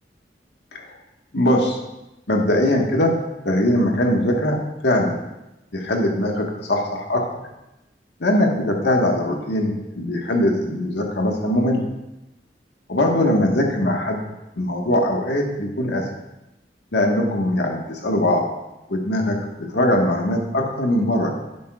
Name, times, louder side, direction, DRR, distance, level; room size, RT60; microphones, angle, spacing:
voice 1, 1.3-1.8 2.3-3.2 3.4-4.6 4.8-5.2 5.7-7.3 8.2-11.8 12.9-14.2 14.6-16.1 16.9-18.4 18.9-21.3, left 1 dB, 80° left, 1 dB, 1.6 m, -21 dB
11.5 x 10.0 x 2.4 m, 0.95 s
head